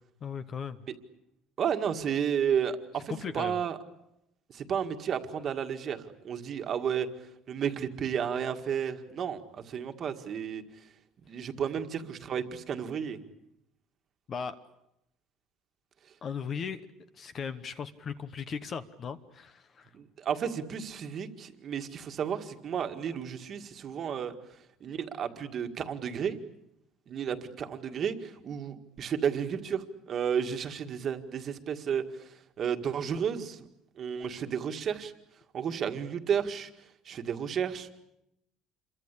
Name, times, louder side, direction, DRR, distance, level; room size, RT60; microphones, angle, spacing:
voice 1, 0.2-0.8 3.1-3.6 14.3-14.6 16.2-16.8 17.1-19.9, left 6 dB, 25° left, 12 dB, 1.0 m, -37 dB
voice 2, 1.6-3.8 4.5-7.1 7.5-10.6 11.3-13.2 19.9-24.3 24.8-26.4 27.1-32.0 32.6-33.7 34.0-35.1 35.5-36.7 37.1-37.9, right 8 dB, 30° right, 6 dB, 1.9 m, -32 dB
28.0 x 23.5 x 8.4 m, 0.83 s
cardioid pair, 180°, 0 cm